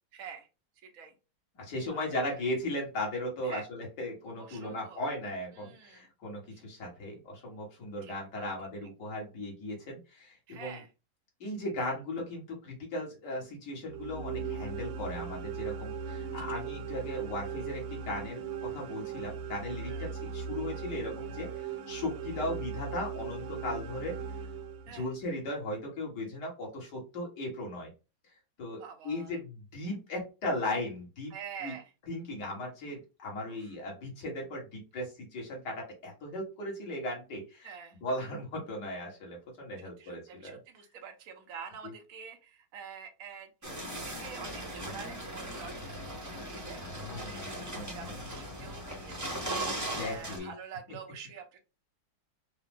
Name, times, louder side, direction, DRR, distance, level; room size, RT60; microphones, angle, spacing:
voice 1, 0.1-0.5 0.8-1.1 1.9-2.4 3.4-3.7 4.4-5.0 5.5-6.1 6.5-6.6 8.0-8.1 10.5-10.9 16.3-16.6 19.8-20.2 24.9-25.1 28.8-29.4 31.3-31.9 33.5-33.7 37.6-38.0 39.8-46.8 47.1-51.6, right 7 dB, 55° right, 3 dB, 1.1 m, -47 dB
voice 2, 1.6-10.8 11.4-24.2 24.9-27.9 28.6-31.3 31.6-31.7 32.1-40.6 47.0-48.0 50.0-50.5, left 1 dB, 60° left, -1 dB, 2.3 m, -37 dB
sound 1, 13.8-25.2, right 6 dB, 85° right, 1.5 m, -38 dB
sound 2, 43.6-50.4, right 1 dB, 15° right, 0.8 m, -38 dB
4.7 x 2.3 x 3.5 m, 0.30 s
omnidirectional pair, 2.1 m